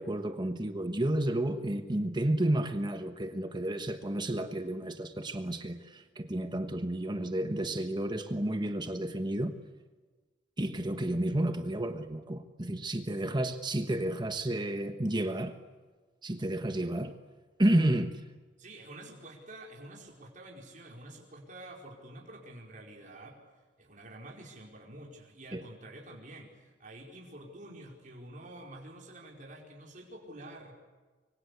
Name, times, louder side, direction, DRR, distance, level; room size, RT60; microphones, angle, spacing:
voice 1, 0.0-9.5 10.6-15.6 16.2-17.1 17.6-18.1 25.5-25.6, right 1 dB, 25° right, 7 dB, 1.3 m, -31 dB
voice 2, 18.6-23.4 23.8-30.7, right 1 dB, 45° right, -1 dB, 4.8 m, -48 dB
25.0 x 25.0 x 8.3 m, 1.3 s
head